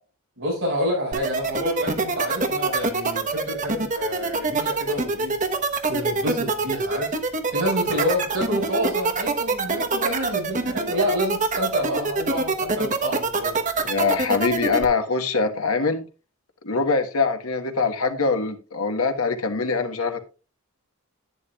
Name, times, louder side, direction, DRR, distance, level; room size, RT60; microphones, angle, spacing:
voice 1, 0.4-5.4 5.9-7.2 7.5-13.9, equal, 65° right, -2 dB, 5.4 m, -28 dB
sound 1, 1.1-14.8, right 3 dB, 35° right, 1.1 m, -24 dB
voice 2, 13.8-16.1 16.6-20.2, left 4 dB, 90° left, 6 dB, 1.4 m, -23 dB
10.5 x 9.8 x 2.4 m, 0.32 s
head